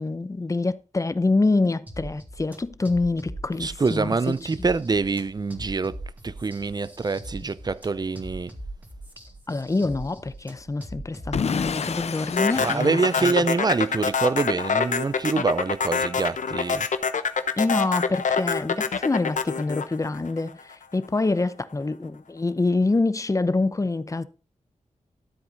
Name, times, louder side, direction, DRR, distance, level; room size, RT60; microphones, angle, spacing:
voice 1, 0.0-4.3 9.5-13.4 17.6-24.2, left 3 dB, 25° left, 0.7 m, -26 dB
sound 1, 1.9-12.5, right 1 dB, 15° right, 2.2 m, -41 dB
voice 2, 3.6-5.9 6.2-8.5 12.6-16.9, right 4 dB, 30° right, 0.5 m, -25 dB
Explosion / Shatter, 11.3-14.1, left 6 dB, 55° left, 0.5 m, -30 dB
sound 2, 12.4-20.7, left 5 dB, 80° left, 0.9 m, -25 dB
13.0 x 7.8 x 4.0 m
wide cardioid pair, 120°, 13 cm